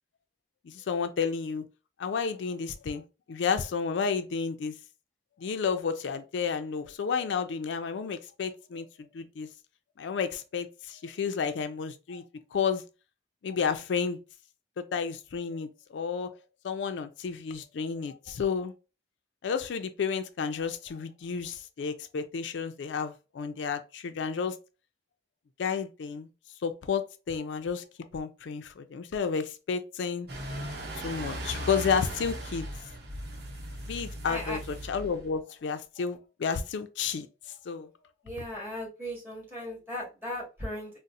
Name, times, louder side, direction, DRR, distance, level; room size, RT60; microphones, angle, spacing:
voice 1, 0.6-1.6 2.0-3.0 3.3-4.7 5.4-9.5 10.0-12.2 12.5-12.8 13.4-14.2 14.8-16.3 16.6-18.7 19.4-24.6 25.6-26.3 26.6-30.3 31.0-32.7 33.8-37.9, left 6 dB, 80° left, 0.4 m, -31 dB
sound 1, 30.3-35.4, right 1 dB, 60° right, 0.9 m, -38 dB
voice 2, 34.3-34.6 38.2-40.9, equal, 15° right, 1.6 m, -37 dB
4.0 x 2.0 x 2.5 m
head